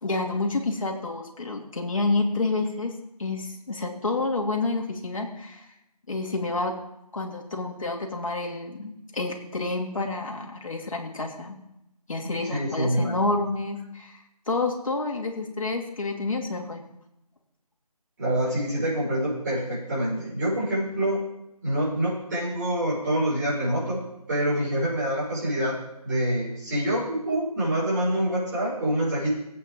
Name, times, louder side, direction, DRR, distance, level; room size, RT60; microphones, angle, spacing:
voice 1, 0.0-2.9 3.2-5.7 6.1-6.7 7.1-11.6 12.1-16.8, left 3 dB, 55° left, 1 dB, 2.7 m, -29 dB
voice 2, 12.5-13.1 18.2-21.2 21.6-24.0 24.3-25.8 26.0-29.3, right 1 dB, 30° right, -7 dB, 5.7 m, -26 dB
17.0 x 8.7 x 3.8 m, 0.85 s
figure-of-eight pair, 165°, 20 cm